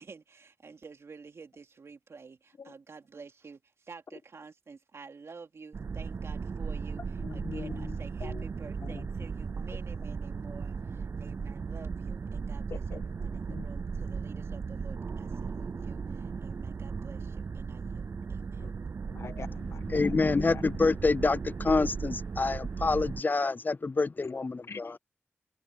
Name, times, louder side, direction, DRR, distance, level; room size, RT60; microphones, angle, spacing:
voice 1, 0.0-7.0 7.3-18.6, right 4 dB, 80° right, 3.3 m, -50 dB
sound 1, 5.7-23.2, right 5 dB, 65° right, 0.4 m, -36 dB
voice 2, 7.2-8.4 8.8-9.1 12.7-13.7 18.6-18.7 19.1-20.6 24.2-24.4 24.7-25.0, left 5 dB, 85° left, 1.6 m, -44 dB
voice 3, 19.9-24.9, left 3 dB, 45° left, 0.3 m, -27 dB
wide cardioid pair, 75°, 5 cm